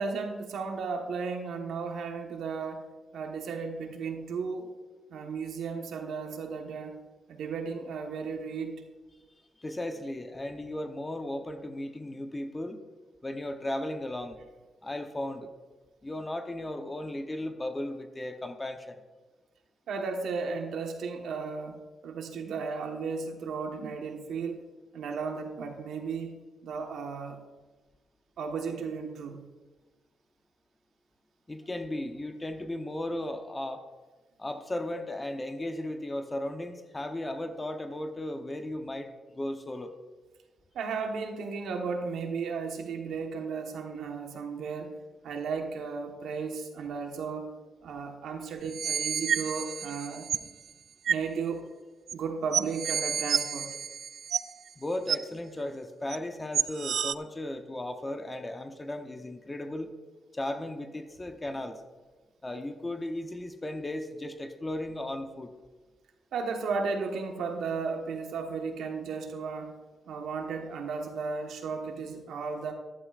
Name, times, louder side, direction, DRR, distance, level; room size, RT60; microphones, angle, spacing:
voice 1, 0.0-2.9 3.1-4.7 5.1-7.0 7.3-8.8 19.9-24.6 24.9-27.4 28.4-29.4 40.7-44.9 45.2-47.5 47.8-50.3 51.1-51.6 52.1-53.7 66.3-69.7 70.1-72.7, right 5 dB, 80° right, 3 dB, 1.2 m, -34 dB
voice 2, 9.6-12.8 13.2-14.4 14.8-15.5 16.0-19.0 31.5-33.8 34.4-39.9 54.8-59.9 60.3-61.8 62.4-65.5, left 1 dB, 15° left, 7 dB, 0.8 m, -36 dB
sound 1, 48.6-50.5 51.1-51.3 52.1-52.2 52.5-54.7 55.1-55.2 56.1-56.2 56.5-57.1, right 8 dB, 65° right, 0.3 m, -30 dB
14.5 x 11.0 x 2.5 m, 1.3 s
cardioid pair, 125°, 0 cm